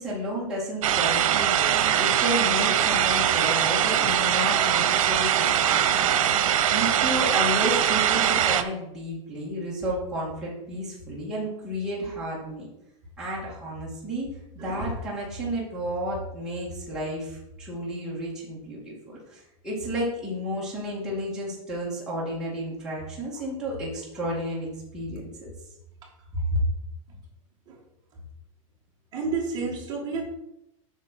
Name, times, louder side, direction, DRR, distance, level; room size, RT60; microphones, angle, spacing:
voice 1, 0.0-6.1 6.7-12.7 13.2-14.3 14.5-25.5 26.3-26.4, equal, 5° right, -8 dB, 2.3 m, -32 dB
sound 1, 0.8-8.6, right 10 dB, 85° right, 0.9 m, -22 dB
voice 2, 29.1-30.2, right 4 dB, 25° right, -3 dB, 2.3 m, -30 dB
8.8 x 6.1 x 4.5 m, 0.83 s
supercardioid pair, 175°, 17 cm